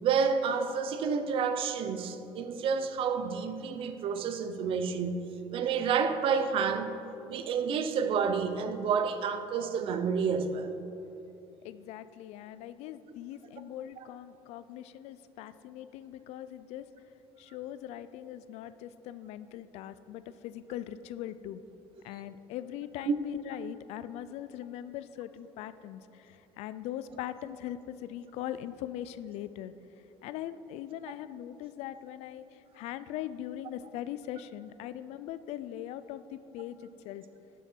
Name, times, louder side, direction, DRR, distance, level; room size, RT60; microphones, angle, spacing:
voice 1, 0.0-6.9 7.3-10.8 23.1-23.2, right 6 dB, 55° right, 0.6 m, -29 dB
voice 2, 11.6-16.8 17.4-21.6 22.0-29.7 30.2-37.2, left 12 dB, 70° left, 0.4 m, -41 dB
11.0 x 7.0 x 4.4 m
cardioid pair, 130°, 11 cm